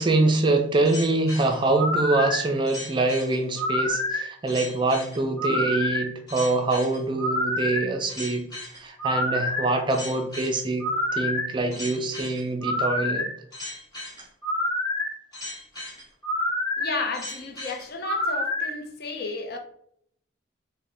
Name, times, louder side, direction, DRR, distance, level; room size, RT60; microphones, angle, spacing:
voice 1, 0.0-8.4 8.8-13.3, right 2 dB, 25° right, 0.4 m, -24 dB
sound 1, 0.8-18.7, left 1 dB, 25° left, 1.4 m, -29 dB
voice 2, 16.8-19.6, left 3 dB, 55° left, 0.6 m, -32 dB
3.9 x 2.1 x 3.2 m
head